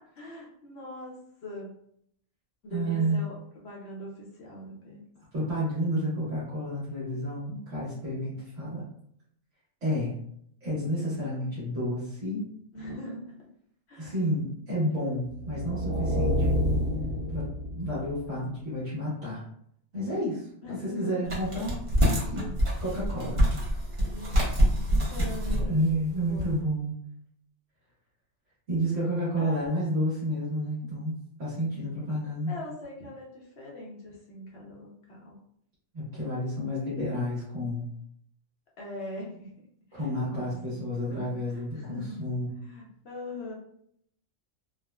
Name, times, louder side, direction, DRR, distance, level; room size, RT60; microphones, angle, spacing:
voice 1, 0.2-1.8 2.6-3.3 3.6-5.0 7.0-7.3 12.7-13.3 13.9-14.1 20.6-21.3 24.0-24.3 25.1-25.7 26.1-26.5 29.4-29.8 32.5-35.4 38.8-39.6 39.9-42.2 42.6-43.5, left 1 dB, 55° left, -3 dB, 0.9 m, -41 dB
voice 2, 2.7-3.2 5.3-8.8 9.8-10.2 10.6-12.5 14.0-16.5 17.3-17.5 17.7-19.4 19.9-20.5 20.8-22.5 22.8-23.4 25.0-25.1 25.6-26.9 28.7-32.5 35.9-37.9 39.9-42.5, equal, 65° right, -8 dB, 1.3 m, -30 dB
sound 1, 15.3-18.3, equal, 90° right, 1.1 m, -28 dB
sound 2, 21.3-26.5, equal, 40° right, 0.5 m, -26 dB
3.5 x 2.1 x 2.2 m, 0.70 s
omnidirectional pair, 1.4 m